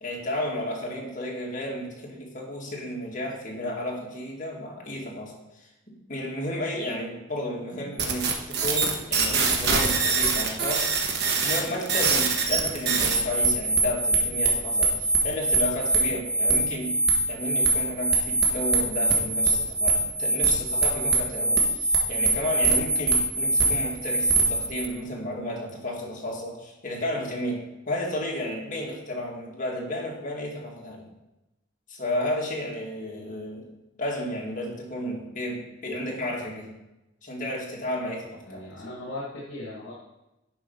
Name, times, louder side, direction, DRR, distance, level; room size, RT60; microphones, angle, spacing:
voice 1, 0.0-10.9 11.4-16.9 17.3-31.1 31.9-33.7 34.0-36.7 37.2-38.7, left 1 dB, 40° left, -1 dB, 2.1 m, -32 dB
sound 1, 8.0-24.9, right 3 dB, 55° right, 1.3 m, -23 dB
voice 2, 38.5-39.9, left 1 dB, 65° left, -5 dB, 2.0 m, -37 dB
10.0 x 4.6 x 5.5 m, 0.95 s
head